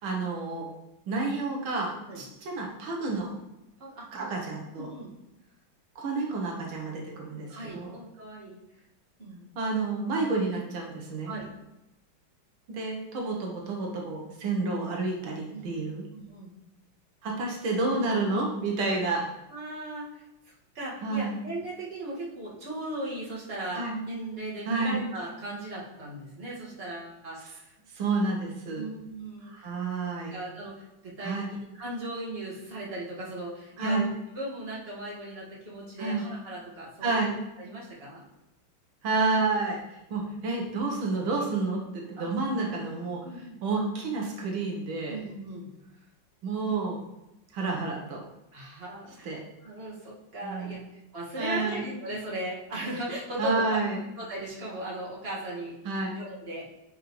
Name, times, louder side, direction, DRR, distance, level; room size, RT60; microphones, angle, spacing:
voice 1, 0.0-0.7 1.1-3.3 4.1-4.9 6.0-7.9 9.6-11.3 12.7-16.1 17.2-19.2 21.0-21.4 23.7-24.0 24.7-25.0 27.9-28.9 29.4-30.3 31.2-31.5 33.8-34.1 36.0-36.2 37.0-37.4 39.0-39.8 40.1-43.2 43.6-45.2 46.4-47.0 47.5-48.2 49.2-49.4 50.4-50.8 51.4-51.9 53.4-54.0 55.9-56.2, right 3 dB, 85° right, -1 dB, 1.9 m, -30 dB
voice 2, 3.8-4.3 4.7-5.1 7.5-8.6 9.2-9.5 11.2-11.5 15.5-15.8 16.1-16.5 18.9-19.0 19.5-20.2 20.7-27.7 28.7-29.7 30.3-38.2 40.5-40.7 42.2-42.3 43.2-43.6 45.1-45.7 48.5-49.3 49.6-50.8 51.1-53.8 54.2-56.6, right 1 dB, 30° right, -6 dB, 2.1 m, -38 dB
10.0 x 5.2 x 3.2 m, 0.91 s
omnidirectional pair, 2.2 m